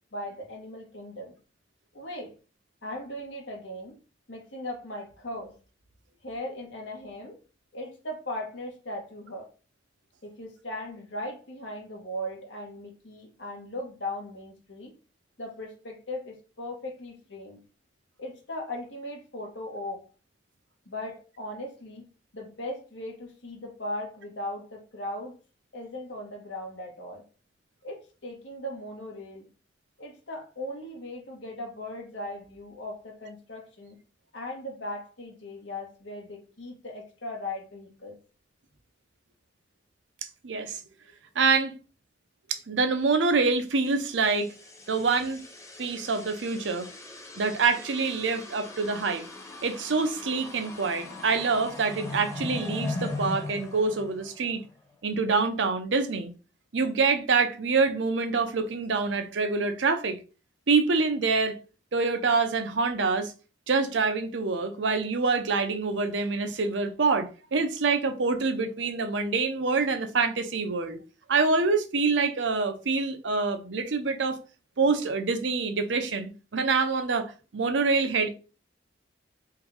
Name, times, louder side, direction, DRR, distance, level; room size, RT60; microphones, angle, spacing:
voice 1, 0.1-1.3 1.9-2.3 2.8-4.0 4.3-5.5 6.2-7.4 7.7-9.5 10.2-14.9 15.4-17.6 18.2-20.0 20.8-22.1 22.3-25.3 25.7-27.2 27.8-29.5 30.0-34.0 34.3-38.2, left 1 dB, 90° left, 1.6 m, -38 dB
voice 2, 40.4-40.8 41.3-41.7 42.5-44.5 44.9-45.4 45.8-46.9 47.4-49.3 49.6-54.6 55.0-56.3 56.7-60.2 60.7-61.6 61.9-63.3 63.7-71.0 71.3-74.4 74.8-78.3, right 4 dB, 90° right, 0.7 m, -26 dB
sound 1, 44.0-54.7, left 2 dB, 15° left, 0.9 m, -39 dB
3.8 x 2.7 x 4.7 m
head